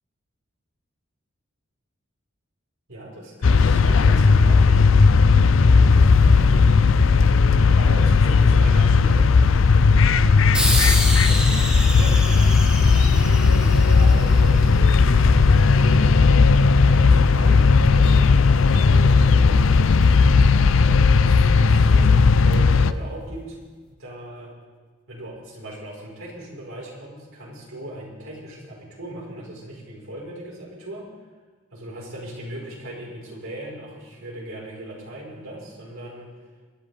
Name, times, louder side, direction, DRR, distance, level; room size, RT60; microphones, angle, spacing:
voice 1, 2.9-6.8 7.8-15.0 15.8-16.4 16.9-19.6 20.7-23.6 24.0-24.5 25.1-31.0 31.7-36.3, right 1 dB, 80° right, -3 dB, 4.7 m, -38 dB
sound 1, 3.4-22.9, left 4 dB, 70° left, 0.5 m, -16 dB
sound 2, 10.5-15.5, equal, 5° right, 3.4 m, -28 dB
sound 3, 23.1-23.2, equal, 40° left, 0.9 m, -35 dB
24.5 x 11.0 x 3.5 m, 1.4 s
head